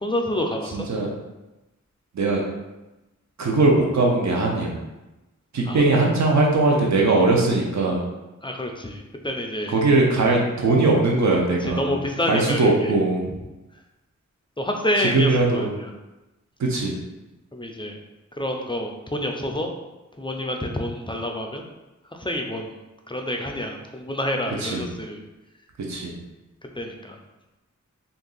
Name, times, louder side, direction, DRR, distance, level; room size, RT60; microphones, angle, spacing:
voice 1, 0.0-0.9 5.7-5.8 8.4-9.8 11.6-12.9 14.6-15.7 17.5-18.0 18.4-19.7 20.2-21.6 22.1-22.7 23.1-25.2 26.8-27.2, left 1 dB, 15° left, 2 dB, 0.4 m, -28 dB
voice 2, 0.7-1.1 2.1-2.4 3.4-4.8 5.5-8.1 9.7-12.0 12.3-13.3 15.0-15.7 16.6-17.0 24.6-24.9 25.9-26.2, right 2 dB, 65° right, -1 dB, 0.7 m, -20 dB
2.8 x 2.6 x 3.8 m, 1.0 s
wide cardioid pair, 90°, 30 cm